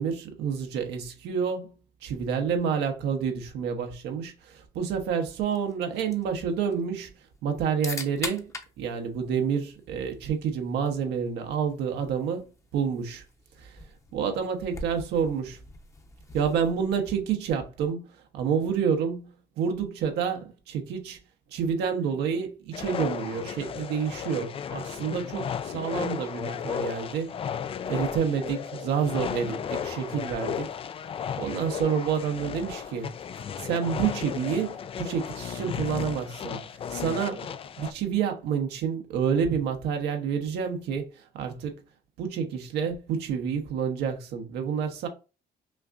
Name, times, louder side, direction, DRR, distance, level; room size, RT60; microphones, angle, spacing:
voice 1, 0.0-1.7 2.0-7.1 7.4-13.2 13.6-13.8 14.1-15.6 16.3-19.3 19.6-21.2 21.5-27.4 27.9-30.7 31.4-33.1 33.6-36.6 36.9-37.5 37.8-41.7 42.2-45.1, right 7 dB, 80° right, 1.1 m, -29 dB
sound 1, 5.4-17.4, left 2 dB, 15° left, 0.8 m, -44 dB
sound 2, 22.7-37.9, left 8 dB, 35° left, 0.4 m, -34 dB
5.7 x 2.5 x 2.5 m
cardioid pair, 110°, 17 cm